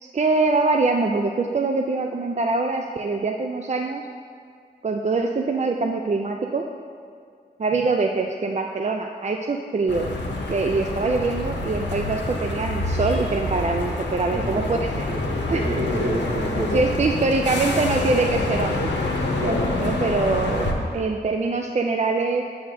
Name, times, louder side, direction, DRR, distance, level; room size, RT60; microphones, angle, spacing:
voice 1, 0.0-4.0 4.8-6.6 7.6-10.1 10.5-14.9 15.5-15.7 16.7-18.9 19.8-22.4, right 3 dB, 40° right, 3 dB, 0.4 m, -24 dB
sound 1, 9.9-20.7, left 2 dB, 90° left, 0.8 m, -27 dB
voice 2, 14.3-16.8 19.4-19.7, equal, 65° right, -2 dB, 1.1 m, -28 dB
9.0 x 7.7 x 2.6 m, 2.1 s
wide cardioid pair, 75°, 18 cm